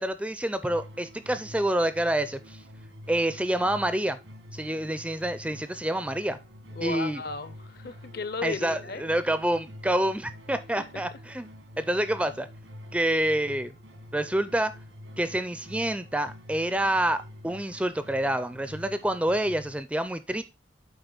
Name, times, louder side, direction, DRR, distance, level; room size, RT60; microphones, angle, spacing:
voice 1, 0.0-2.6 3.1-4.2 4.5-6.4 6.8-7.2 8.4-11.5 11.8-12.5 12.9-13.7 14.1-14.7 15.2-20.4, right 1 dB, 5° right, 0.4 m, -27 dB
sound 1, 0.6-19.8, left 1 dB, 90° right, 1.5 m, -47 dB
voice 2, 6.7-9.1 10.8-11.0, left 4 dB, 55° left, 0.7 m, -35 dB
7.9 x 4.7 x 3.9 m
head